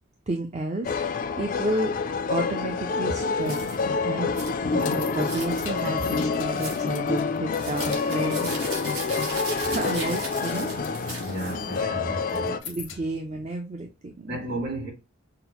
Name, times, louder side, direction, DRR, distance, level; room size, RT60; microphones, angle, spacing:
voice 1, 0.3-1.9 2.3-3.6 4.0-4.3 4.7-8.6 9.6-10.7 12.6-14.4, right 1 dB, 30° right, 0.4 m, -31 dB
sound 1, 0.8-12.6, left 4 dB, 40° left, 0.3 m, -27 dB
sound 2, 3.5-3.8 4.3-4.5 5.1-5.7 6.5-6.8 7.5-11.8, right 3 dB, 85° right, 1.4 m, -37 dB
sound 3, 4.6-9.1 9.3-9.8 10.2-10.4 10.7-11.2 12.2-13.2, left 8 dB, 85° left, 0.7 m, -42 dB
voice 2, 11.2-12.6 14.3-14.9, right 1 dB, 50° right, 2.3 m, -33 dB
5.8 x 2.0 x 2.9 m
head